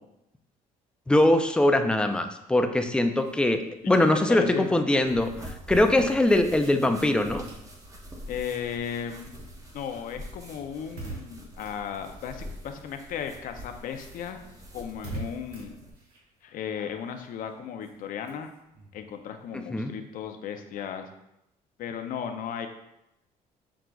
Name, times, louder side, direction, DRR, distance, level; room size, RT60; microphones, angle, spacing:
voice 1, 1.1-5.3 5.7-7.5 19.5-19.9, left 1 dB, 5° left, 6 dB, 0.4 m, -22 dB
sound 1, 3.1-13.0 13.3-20.2, right 2 dB, 85° right, 1.3 m, -47 dB
voice 2, 4.3-4.7 8.3-9.4 9.7-14.4 14.7-15.8 16.4-18.5 18.9-21.1 21.8-22.7, left 8 dB, 65° left, 6 dB, 0.6 m, -35 dB
sound 2, 5.0-15.9, equal, 20° right, 0.8 m, -44 dB
6.0 x 3.7 x 2.3 m, 0.85 s
cardioid pair, 95°, 15 cm